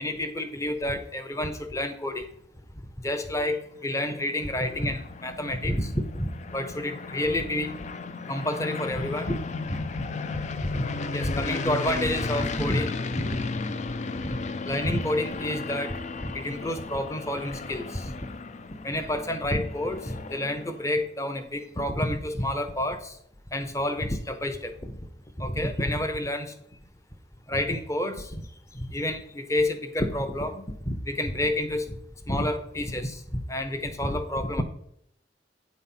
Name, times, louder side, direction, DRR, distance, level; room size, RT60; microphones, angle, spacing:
voice 1, 0.0-2.3 3.0-7.7 8.3-9.4 9.7-9.8 10.3-10.9 11.1-13.4 14.2-14.4 14.7-16.0 16.2-18.1 18.8-23.2 23.5-25.0 25.4-26.5 27.5-28.4 28.7-31.9 32.3-34.6, left 1 dB, 15° left, 9 dB, 0.8 m, -29 dB
sound 1, 3.8-20.9, left 4 dB, 40° left, 0.4 m, -35 dB
8.8 x 4.2 x 5.7 m, 0.73 s
head